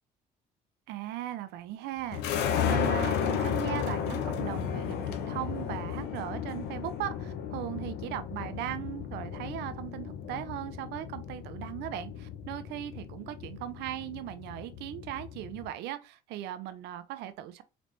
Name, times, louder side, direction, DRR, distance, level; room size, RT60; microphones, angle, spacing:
voice 1, 0.9-17.6, right 12 dB, 85° right, 0.5 m, -38 dB
sound 1, 2.1-15.7, left 8 dB, 85° left, 0.7 m, -34 dB
4.0 x 3.0 x 3.2 m
cardioid pair, 110°, 17 cm